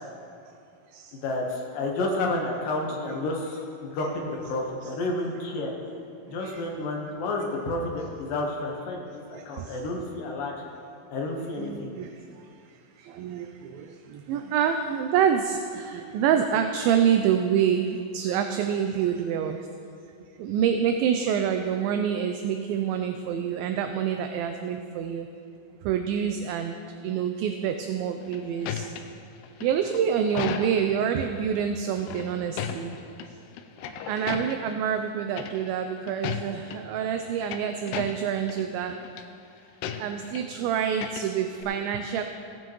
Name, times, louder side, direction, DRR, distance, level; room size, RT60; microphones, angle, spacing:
voice 1, 1.1-5.7 6.3-10.5 11.1-11.9, left 2 dB, 70° left, -1 dB, 2.8 m, -30 dB
voice 2, 9.3-9.8 11.6-12.2 12.5-12.6 13.0-19.7 20.4-25.3 25.8-28.9 29.6-33.0 34.1-39.0 40.0-42.2, right 8 dB, 80° right, 6 dB, 2.2 m, -27 dB
sound 1, 28.0-31.1 32.0-33.3 33.6-34.8 35.4-35.8 36.1-36.8 37.2-38.6 38.9-39.2 39.8-40.6 40.9-41.6, left 8 dB, 90° left, 2.6 m, -36 dB
17.0 x 9.2 x 3.0 m, 2.5 s
omnidirectional pair, 4.5 m